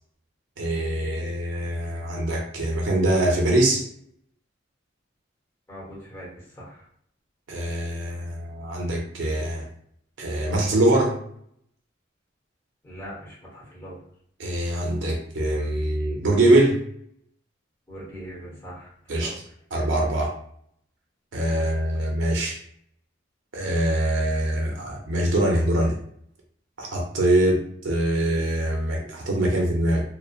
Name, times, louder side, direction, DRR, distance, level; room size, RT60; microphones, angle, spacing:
voice 1, 0.6-3.9 7.5-9.7 10.2-11.2 14.4-16.8 19.1-19.3 19.7-20.3 21.3-22.6 23.5-25.9 26.8-30.0, right 1 dB, 80° right, 0 dB, 0.6 m, -23 dB
voice 2, 5.7-6.8 12.8-14.0 17.9-18.9 19.2-19.3, equal, 15° left, -6 dB, 1.0 m, -41 dB
2.8 x 2.0 x 2.4 m, 0.65 s
head